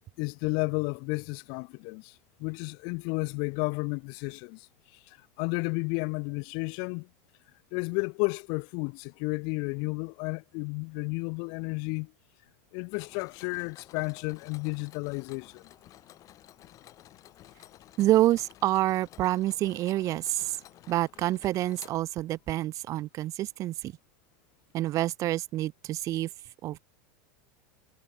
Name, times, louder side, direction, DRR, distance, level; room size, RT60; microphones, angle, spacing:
voice 1, 0.2-2.1 2.4-4.7 5.4-7.1 7.7-12.1 12.7-15.6, left 37 dB, 55° left, 0.5 m, -32 dB
Mechanisms, 12.9-22.5, left 13 dB, 40° left, 2.3 m, -53 dB
voice 2, 18.0-20.6 20.9-23.9 24.7-26.3 26.6-26.8, right 15 dB, 40° right, 0.4 m, -27 dB
hypercardioid pair, 105°, 8 cm